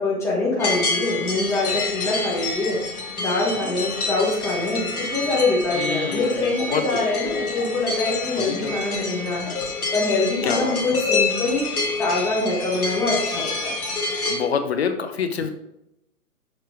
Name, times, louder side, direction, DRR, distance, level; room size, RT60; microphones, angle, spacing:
voice 1, 0.0-2.8 3.2-9.5 9.9-11.6 12.0-13.7, left 2 dB, 5° left, -5 dB, 1.2 m, -24 dB
sound 1, 0.6-14.4, left 3 dB, 75° left, 1.9 m, -27 dB
voice 2, 5.7-6.8 8.4-8.8 10.4-10.8 14.3-15.5, left 7 dB, 45° left, 7 dB, 0.7 m, -26 dB
6.7 x 4.4 x 4.8 m, 0.86 s
figure-of-eight pair, 135°, 45 cm